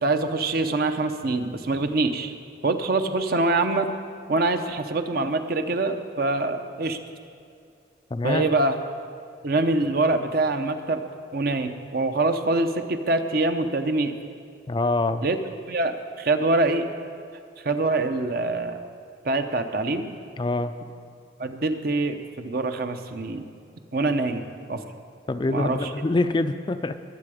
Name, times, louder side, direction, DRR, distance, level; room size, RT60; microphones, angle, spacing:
voice 1, 0.0-2.3 2.6-3.9 4.3-7.0 8.2-8.7 9.4-11.0 11.3-14.1 15.2-15.4 15.7-16.9 17.6-18.8 19.2-20.1 21.4-23.4 23.9-24.8 25.5-25.9, right 2 dB, 55° right, 7 dB, 0.7 m, -24 dB
voice 2, 8.1-8.5 14.7-15.3 20.4-20.7 25.3-27.0, left 2 dB, 25° left, 10 dB, 0.4 m, -25 dB
21.0 x 7.7 x 5.0 m, 2.3 s
head